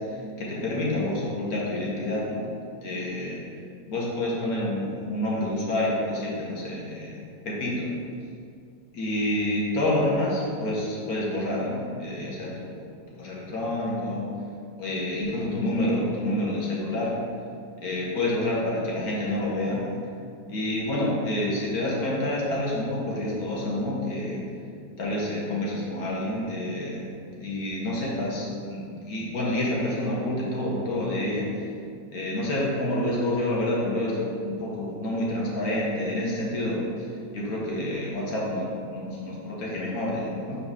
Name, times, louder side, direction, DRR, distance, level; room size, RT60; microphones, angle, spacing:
voice 1, 0.4-2.4 2.8-3.4 3.9-7.9 8.9-12.8 13.2-14.3 14.8-17.1 17.8-19.8 20.5-24.4 25.0-27.1 27.4-31.5 32.1-37.1 37.3-40.6, left 1 dB, 70° left, -5 dB, 1.7 m, -28 dB
6.6 x 4.7 x 3.6 m, 2.3 s
omnidirectional pair, 1.7 m